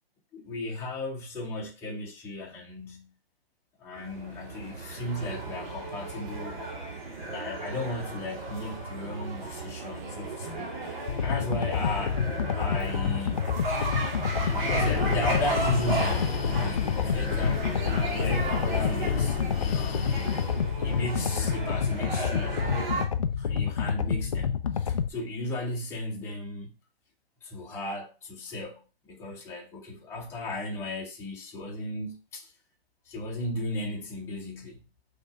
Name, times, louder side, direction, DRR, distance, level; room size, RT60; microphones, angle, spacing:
voice 1, 0.3-3.1 3.8-6.6 7.3-10.7 11.2-12.2 12.5-13.4 14.6-19.4 19.7-20.3 20.8-22.6 23.4-26.7 27.4-32.5 33.1-34.8, left 1 dB, 10° left, 1.3 m, -35 dB
sound 1, 4.0-23.0, right 2 dB, 50° right, 2.2 m, -35 dB
sound 2, 11.1-25.1, left 7 dB, 35° left, 0.4 m, -29 dB
Breathing, 14.1-20.7, left 8 dB, 70° left, 0.8 m, -34 dB
6.0 x 3.4 x 4.9 m
hypercardioid pair, 165°, 31 cm